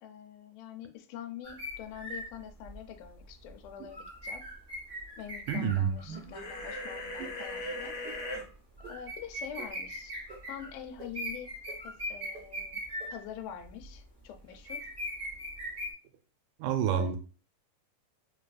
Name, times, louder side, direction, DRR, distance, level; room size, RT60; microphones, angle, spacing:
voice 1, 0.0-4.5 5.2-8.0 8.9-10.1 10.5-11.5 11.8-12.8 13.1-14.9 16.9-17.2, left 9 dB, 85° left, 6 dB, 2.4 m, -45 dB
sound 1, 1.4-6.7 7.1-7.3 8.1-8.5 8.8-10.7 11.1-13.2 13.6-14.0 14.6-15.9, equal, 35° right, 0.4 m, -40 dB
voice 2, 5.5-5.9 16.6-17.2, right 8 dB, 80° right, 7 dB, 2.0 m, -28 dB
sound 2, 6.0-6.5 7.2-7.3 8.0-8.2 8.8-8.9 9.6-9.7 10.3-10.4 11.0-11.1 11.7-11.8 12.3-12.4 13.0-13.1, right 6 dB, 65° right, 1.5 m, -45 dB
sound 3, 6.3-8.4, left 1 dB, 50° left, 1.4 m, -38 dB
5.1 x 3.3 x 2.2 m, 0.36 s
omnidirectional pair, 4.0 m